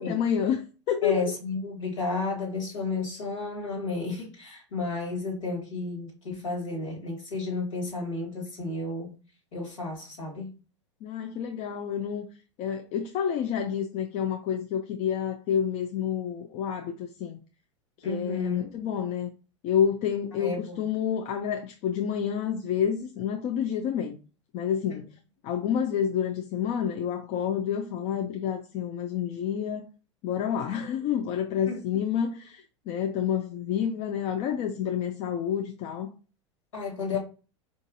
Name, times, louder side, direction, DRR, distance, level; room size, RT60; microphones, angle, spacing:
voice 1, 0.0-1.3 11.0-12.2 12.6-17.4 18.0-19.3 19.6-24.2 24.5-25.1 25.4-29.8 30.2-36.1 37.1-37.2, left 8 dB, 45° left, 0.5 m, -29 dB
voice 2, 1.0-9.1 9.5-10.5 18.0-18.7 20.4-20.8 24.9-25.0 31.7-31.8 36.7-37.2, left 3 dB, 80° left, 2.0 m, -32 dB
4.7 x 2.5 x 2.6 m
hypercardioid pair, 90°, 16 cm